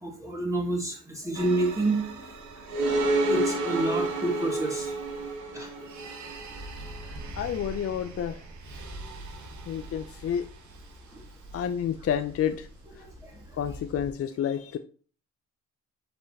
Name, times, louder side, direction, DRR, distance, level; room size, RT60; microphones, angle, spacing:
voice 1, 0.0-2.1 3.3-4.9 5.5-5.7, right 2 dB, 10° right, 0 dB, 1.7 m, -28 dB
sound 1, 1.4-14.1, right 2 dB, 70° right, 1.6 m, -33 dB
voice 2, 7.4-8.4 9.7-10.5 11.5-12.7 13.5-14.8, left 9 dB, 50° left, 9 dB, 0.5 m, -29 dB
5.2 x 4.4 x 4.1 m, 0.41 s
cardioid pair, 90°, 30 cm